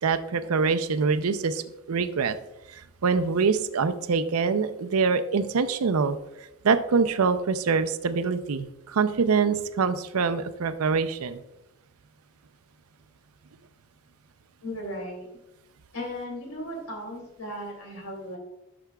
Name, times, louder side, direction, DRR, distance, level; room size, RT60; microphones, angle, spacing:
voice 1, 0.0-1.6 1.9-2.4 2.7-6.2 6.6-11.4, right 5 dB, 90° right, 10 dB, 0.5 m, -24 dB
voice 2, 14.6-15.3 15.9-18.4, equal, 85° left, 1 dB, 2.5 m, -36 dB
12.5 x 5.9 x 2.3 m, 0.91 s
head